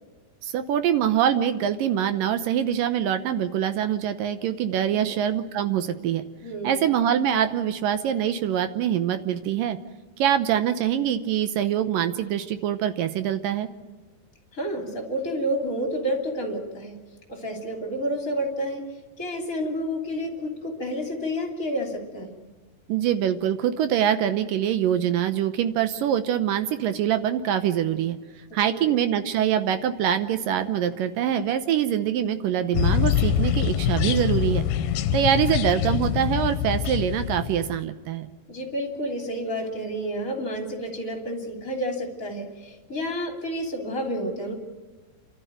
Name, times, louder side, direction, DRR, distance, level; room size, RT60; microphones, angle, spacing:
voice 1, 0.4-6.3 6.6-9.8 10.2-13.7 22.9-28.2 28.5-34.7 35.1-38.3, right 9 dB, 75° right, 10 dB, 2.2 m, -24 dB
voice 2, 6.4-6.9 14.5-17.0 17.3-18.8 19.2-22.3 28.5-29.0 38.5-44.5, equal, 20° left, 2 dB, 3.0 m, -30 dB
sound 1, 32.7-37.8, left 10 dB, 75° left, 2.5 m, -24 dB
29.0 x 13.0 x 9.2 m, 1.3 s
omnidirectional pair, 4.7 m